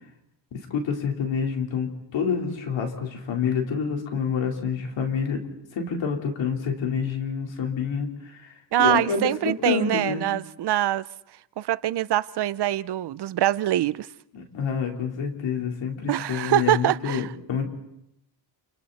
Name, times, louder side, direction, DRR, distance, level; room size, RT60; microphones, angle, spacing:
voice 1, 0.5-5.4 5.7-10.3 14.3-17.6, left 6 dB, 85° left, 4.1 m, -28 dB
voice 2, 8.7-11.0 11.6-14.1 16.1-17.3, right 13 dB, 65° right, 0.8 m, -24 dB
29.5 x 28.5 x 4.2 m
cardioid pair, 100°, 44 cm